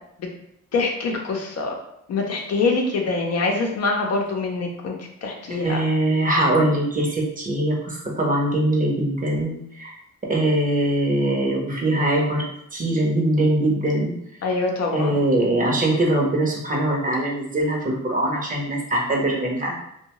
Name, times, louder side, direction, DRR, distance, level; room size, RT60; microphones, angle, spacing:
voice 1, 0.7-1.8 2.1-5.8 14.4-15.3, left 3 dB, 55° left, 1 dB, 0.6 m, -24 dB
voice 2, 5.5-10.0 10.3-12.4 12.7-14.2 14.9-19.8, right 1 dB, 25° right, -2 dB, 0.7 m, -22 dB
2.6 x 2.2 x 2.9 m, 0.76 s
cardioid pair, 90°, 30 cm